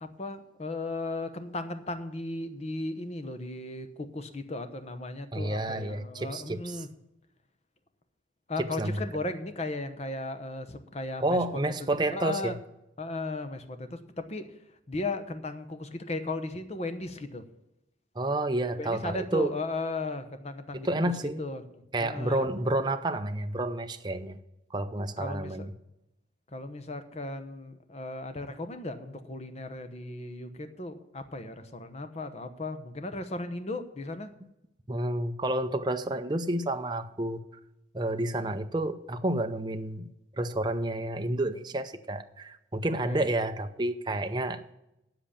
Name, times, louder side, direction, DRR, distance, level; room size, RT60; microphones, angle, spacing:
voice 1, 0.0-6.9 8.5-11.4 12.0-12.6 13.0-14.5 14.9-17.4 18.7-20.9 21.4-21.6 22.0-22.5 25.2-25.7 26.5-34.3 43.1-43.3, left 2 dB, 35° left, 1.0 m, -36 dB
voice 2, 5.3-6.9 8.6-9.1 11.2-12.6 18.2-19.6 20.7-21.4 21.9-24.4 24.7-25.7 34.9-37.4 37.9-40.1 40.4-44.6, right 1 dB, 25° right, 0.6 m, -30 dB
8.7 x 7.8 x 8.4 m
head